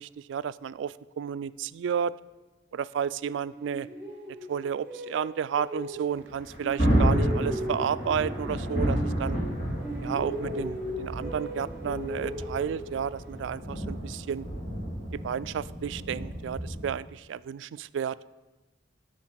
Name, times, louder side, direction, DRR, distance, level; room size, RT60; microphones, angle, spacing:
voice 1, 0.0-2.1 2.7-3.9 4.5-9.4 10.0-14.4 15.1-18.2, right 7 dB, 80° right, 17 dB, 0.3 m, -32 dB
sound 1, 3.5-6.3 6.6-9.5 9.8-13.3, equal, 10° right, 2.3 m, -37 dB
Thunder, 6.2-16.9, equal, 45° left, 2.9 m, -31 dB
7.6 x 6.4 x 7.5 m, 1.1 s
head